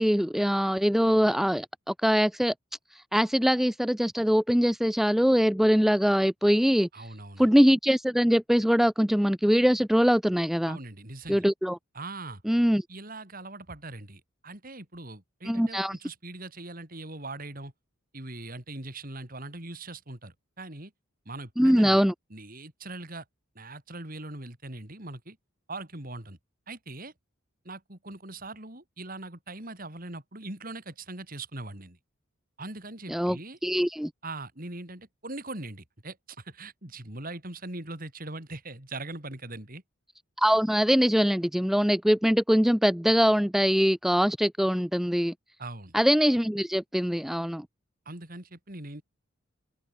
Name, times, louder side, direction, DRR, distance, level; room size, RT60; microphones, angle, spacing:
voice 1, 0.0-2.5 2.9-7.1 7.4-10.8 11.3-11.8 12.5-12.8 15.5-16.0 21.6-22.1 33.1-34.1 40.4-45.3 45.9-47.6, equal, ahead, 0.4 m, -23 dB
voice 2, 6.9-7.5 10.6-11.5 11.9-12.4 12.9-17.7 18.1-20.9 21.3-22.0 22.3-23.2 23.5-25.4 25.7-26.4 26.7-27.1 27.6-32.0 32.6-33.6 34.2-39.8 45.6-45.9 48.1-49.0, right 2 dB, 40° right, 4.2 m, -41 dB
head